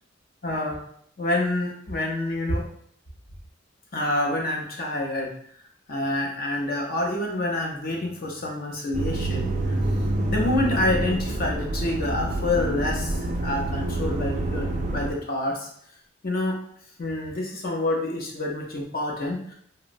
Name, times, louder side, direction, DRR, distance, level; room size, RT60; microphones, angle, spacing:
voice 1, 0.4-0.8 1.2-2.6 3.9-5.3 5.9-9.8 10.2-15.7 16.2-16.6 17.0-19.5, left 1 dB, 50° left, 0 dB, 0.6 m, -27 dB
sound 1, 8.9-15.1, right 1 dB, 40° right, 0.3 m, -27 dB
2.9 x 2.1 x 2.5 m, 0.64 s
head